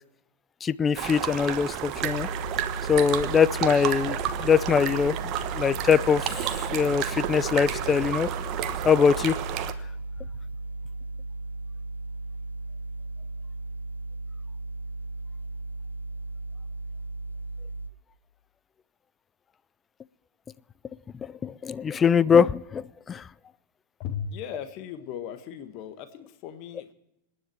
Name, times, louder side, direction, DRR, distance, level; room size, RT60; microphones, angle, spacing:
voice 1, 0.6-2.3 2.9-5.2 5.5-6.4 6.7-8.3 8.8-9.4 21.2-23.2, left 6 dB, 20° left, 20 dB, 0.5 m, -22 dB
sound 1, 1.0-9.7, right 11 dB, 40° right, 1.2 m, -31 dB
sound 2, 2.0-17.9, right 2 dB, 85° left, 0.9 m, -36 dB
voice 2, 24.0-26.9, left 8 dB, 40° left, 10 dB, 1.5 m, -37 dB
26.0 x 10.0 x 4.5 m, 0.84 s
figure-of-eight pair, 90°, 0 cm